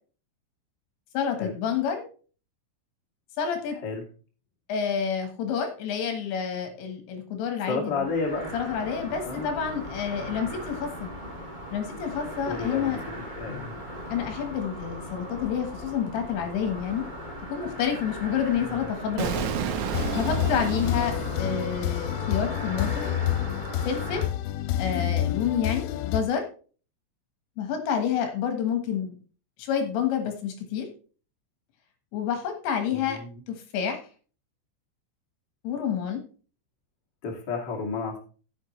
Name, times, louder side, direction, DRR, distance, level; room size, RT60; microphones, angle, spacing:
voice 1, 1.1-2.0 3.4-3.8 4.7-8.0 8.5-11.1 11.7-13.0 13.5-13.8 14.1-17.0 17.5-19.5 20.2-23.1 23.9-24.2 24.8-26.4 27.6-29.1 29.6-30.9 32.1-33.2 33.5-34.0 35.6-36.2, left 7 dB, 70° left, 5 dB, 3.5 m, -29 dB
voice 2, 3.7-4.0 7.7-8.5 9.2-9.5 12.5-13.0 13.3-13.7 18.5-18.9 24.8-25.2 32.9-33.4 37.2-38.2, left 4 dB, 40° left, 0 dB, 1.6 m, -32 dB
sound 1, 7.9-24.2, equal, 40° right, 0.6 m, -38 dB
Explosion, 19.2-22.1, right 6 dB, 70° right, 3.1 m, -31 dB
sound 2, 19.9-26.2, left 12 dB, 85° left, 3.3 m, -28 dB
14.5 x 7.8 x 3.2 m, 0.39 s
omnidirectional pair, 5.9 m